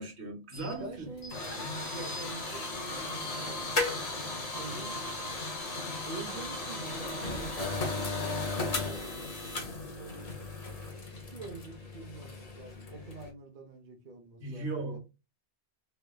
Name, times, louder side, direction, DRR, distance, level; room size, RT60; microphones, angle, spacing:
voice 1, 0.0-1.1 2.1-2.2 4.6-4.9 14.4-15.0, right 2 dB, 70° right, 1.3 m, -38 dB
sound 1, 0.5-13.3, left 2 dB, 40° left, 0.8 m, -36 dB
voice 2, 0.8-1.4 1.9-3.6 3.9-5.1 6.0-10.4 11.2-15.0, right 3 dB, 45° right, 0.9 m, -46 dB
3.4 x 3.3 x 2.3 m
omnidirectional pair, 1.2 m